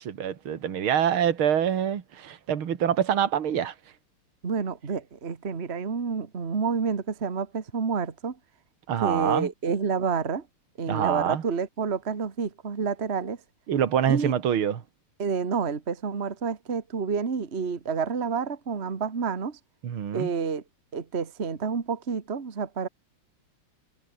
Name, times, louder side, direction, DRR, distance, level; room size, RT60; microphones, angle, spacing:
voice 1, 0.0-3.7 8.9-9.5 10.9-11.4 13.7-14.8 19.8-20.3, right 9 dB, 70° right, 2.6 m, -25 dB
voice 2, 4.4-8.4 9.0-10.4 10.8-13.4 14.1-14.3 15.2-19.6 20.1-20.6 20.9-22.9, right 5 dB, 30° right, 1.8 m, -29 dB
omnidirectional pair, 2.4 m